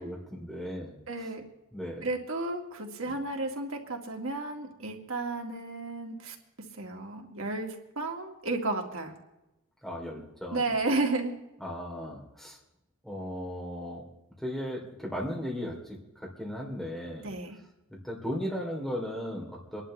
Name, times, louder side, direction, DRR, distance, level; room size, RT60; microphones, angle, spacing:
voice 1, 0.0-0.9 1.7-2.1 3.1-3.2 9.8-10.7 11.6-12.6 13.0-14.0 14.4-15.8 16.4-17.3 18.0-19.8, equal, ahead, -2 dB, 3.0 m, -36 dB
voice 2, 1.1-1.4 2.0-6.4 6.8-9.1 10.5-11.3 17.2-17.6, right 2 dB, 75° right, 1 dB, 2.2 m, -32 dB
26.5 x 11.5 x 3.3 m, 0.94 s
head